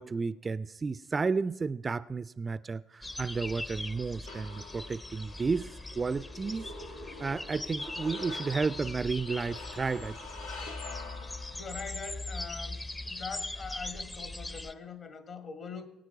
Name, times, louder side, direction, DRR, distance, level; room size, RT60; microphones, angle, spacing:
voice 1, 0.0-5.7 6.0-6.7 7.2-10.2, right 4 dB, 30° right, 0.4 m, -32 dB
sound 1, 3.0-14.7, left 2 dB, 20° left, 0.7 m, -41 dB
sound 2, 3.4-11.9, left 3 dB, 90° left, 2.0 m, -47 dB
voice 2, 11.1-12.8 13.0-15.9, left 5 dB, 50° left, 1.8 m, -43 dB
21.5 x 9.1 x 4.7 m
hypercardioid pair, 55°, 0 cm